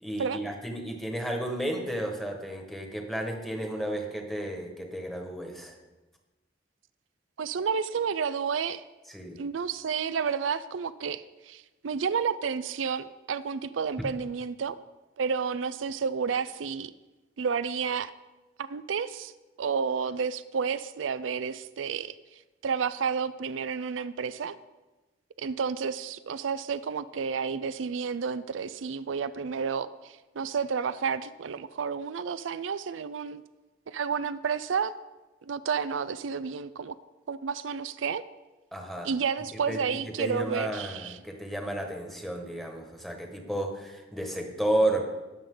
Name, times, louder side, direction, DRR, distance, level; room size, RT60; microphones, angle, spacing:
voice 1, 0.0-5.8 9.1-9.4 38.7-39.1 39.5-45.0, right 1 dB, ahead, 2 dB, 1.5 m, -32 dB
voice 2, 7.4-8.8 9.4-14.8 15.2-16.9 17.4-18.1 18.6-19.3 19.6-22.2 22.6-24.6 25.4-33.4 33.9-34.9 35.4-36.9 37.3-38.2 39.0-41.2, right 6 dB, 90° right, 13 dB, 0.4 m, -31 dB
20.5 x 6.9 x 3.9 m, 1.1 s
head